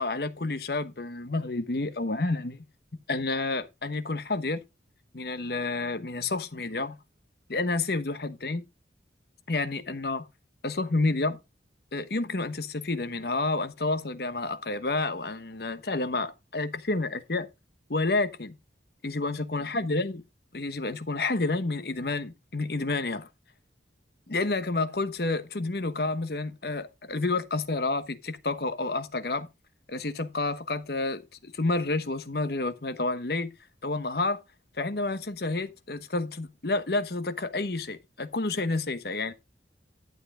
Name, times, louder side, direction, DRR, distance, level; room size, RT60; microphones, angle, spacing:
voice 1, 0.0-2.6 3.1-4.6 5.1-7.0 7.5-8.6 9.5-10.3 10.6-11.4 11.9-17.5 17.9-18.6 19.0-20.2 20.5-23.3 24.3-29.5 29.9-33.5 33.8-34.4 34.8-39.3, left 3 dB, 55° left, 1.1 m, -29 dB
11.5 x 7.7 x 3.6 m
head